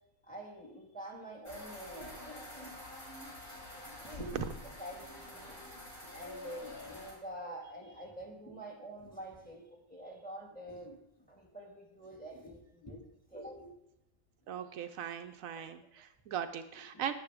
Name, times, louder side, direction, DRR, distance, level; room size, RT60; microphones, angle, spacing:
voice 1, 0.2-2.8 3.9-5.7 6.1-11.0 11.3-13.0 13.3-13.7 14.5-14.6 15.5-15.7 16.9-17.1, right 1 dB, 5° left, 0 dB, 1.9 m, -47 dB
sound 1, 1.4-7.1, left 2 dB, 40° left, 4.7 m, -47 dB
voice 2, 14.5-17.1, right 9 dB, 75° right, 8 dB, 1.0 m, -39 dB
11.5 x 9.7 x 3.5 m, 0.84 s
omnidirectional pair, 1.5 m